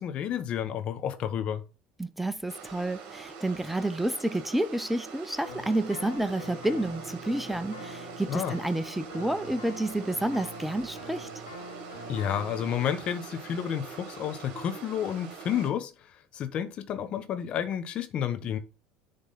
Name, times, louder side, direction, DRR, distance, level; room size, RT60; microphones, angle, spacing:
voice 1, 0.0-1.6 8.3-8.6 12.1-15.9 16.3-18.6, left 9 dB, 50° left, 1.1 m, -30 dB
voice 2, 2.0-11.3, right 1 dB, 5° right, 0.6 m, -30 dB
sound 1, 2.5-15.7, right 6 dB, 55° right, 1.8 m, -44 dB
sound 2, 5.4-12.8, left 1 dB, 90° left, 1.7 m, -44 dB
10.0 x 3.7 x 4.1 m
hypercardioid pair, 70°, 2 cm